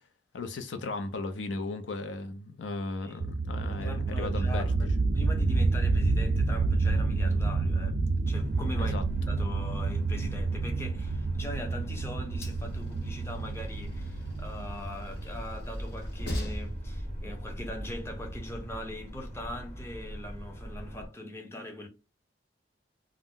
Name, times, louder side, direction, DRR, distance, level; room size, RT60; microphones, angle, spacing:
voice 1, 0.3-4.7 8.8-9.0, left 3 dB, 90° left, 0.5 m, -36 dB
voice 2, 3.0-3.4 3.6-8.0 8.3-9.0 9.3-21.9, left 1 dB, 15° left, 0.6 m, -41 dB
sound 1, 3.2-15.6, right 3 dB, 60° right, 0.4 m, -29 dB
sound 2, 8.4-21.1, equal, 40° left, 1.3 m, -41 dB
Train, 11.0-18.8, equal, 65° left, 0.8 m, -41 dB
2.4 x 2.1 x 3.5 m
head